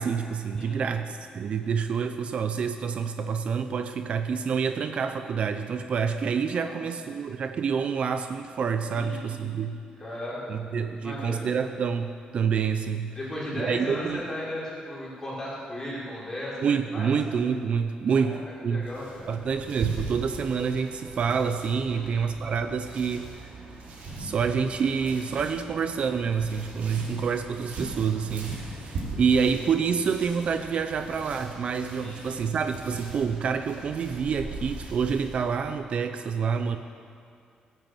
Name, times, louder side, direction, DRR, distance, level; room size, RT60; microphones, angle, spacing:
voice 1, 0.0-9.8 10.5-13.1 13.6-14.2 16.6-18.8 19.3-23.5 24.2-36.8, right 6 dB, 45° right, 8 dB, 0.6 m, -27 dB
voice 2, 0.6-1.0 6.5-6.8 8.9-9.5 10.0-10.5 10.8-11.4 13.1-16.6 16.9-17.1 18.1-18.4 18.7-19.3 21.9-22.3 32.0-32.4, left 1 dB, 20° left, -7 dB, 5.1 m, -36 dB
sound 1, 18.8-35.5, right 2 dB, 70° right, 3.8 m, -40 dB
16.5 x 9.2 x 7.9 m, 2.3 s
cardioid pair, 150°, 3 cm